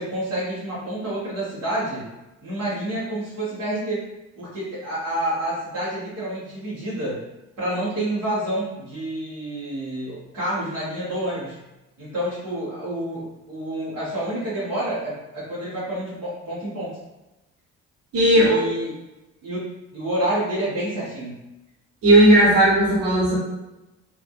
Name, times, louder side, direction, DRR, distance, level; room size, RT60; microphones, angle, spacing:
voice 1, 0.0-2.1 2.4-4.0 4.4-7.2 7.6-11.6 12.0-16.9 18.3-18.9 19.4-19.7 19.9-21.4, right 1 dB, 90° right, -10 dB, 1.3 m, -28 dB
voice 2, 18.1-18.6 22.0-23.4, right 1 dB, 60° right, -5 dB, 1.2 m, -15 dB
3.2 x 2.5 x 2.6 m, 1.0 s
hypercardioid pair, 50°, 37 cm